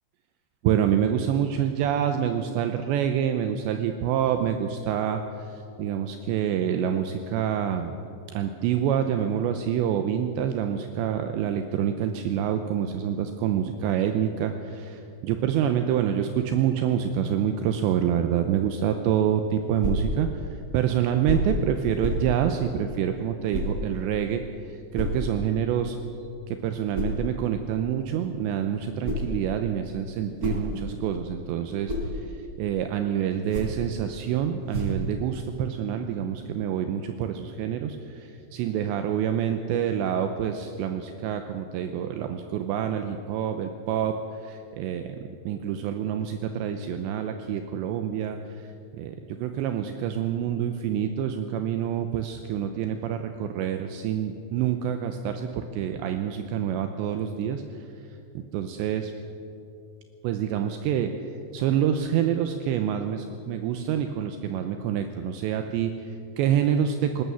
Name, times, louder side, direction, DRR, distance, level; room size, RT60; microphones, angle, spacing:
voice 1, 0.6-5.2 5.5-8.0 8.3-24.4 24.9-26.0 26.5-32.2 32.6-44.1 44.4-45.2 45.5-48.7 49.0-57.6 58.3-59.1 60.2-61.1 61.5-67.2, right 9 dB, 80° right, 7 dB, 2.9 m, -27 dB
sound 1, 19.8-20.1 21.2-21.6 22.0-22.3 23.5-23.8 24.9-25.2 26.9-27.2 28.8-29.4 30.1-31.1 31.6-32.1 33.4-33.9 34.7-35.1, equal, 20° right, 4.1 m, -29 dB
20.5 x 19.0 x 7.0 m, 2.6 s
omnidirectional pair, 5.5 m